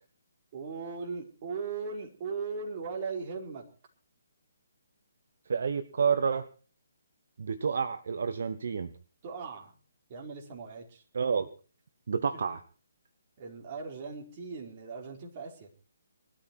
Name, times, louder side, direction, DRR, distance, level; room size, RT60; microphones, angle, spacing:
voice 1, 0.5-3.6 9.2-9.7 10.1-11.0 13.4-15.7, right 5 dB, 35° right, 1 dB, 4.7 m, -38 dB
voice 2, 5.5-6.5 7.4-8.9 11.1-11.5 12.1-12.6, right 6 dB, 60° right, 11 dB, 1.1 m, -29 dB
20.0 x 13.0 x 4.6 m, 0.38 s
figure-of-eight pair, 140°, 0 cm